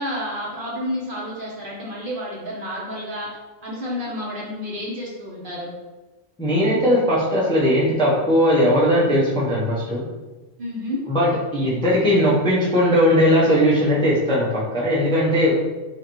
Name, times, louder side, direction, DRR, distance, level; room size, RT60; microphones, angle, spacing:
voice 1, 0.0-3.3 3.6-5.7 10.6-11.0, left 1 dB, 50° right, -4 dB, 0.9 m, -30 dB
voice 2, 6.4-10.0 11.1-15.7, equal, 5° left, -6 dB, 0.6 m, -19 dB
4.9 x 2.5 x 3.0 m, 1.2 s
omnidirectional pair, 1.3 m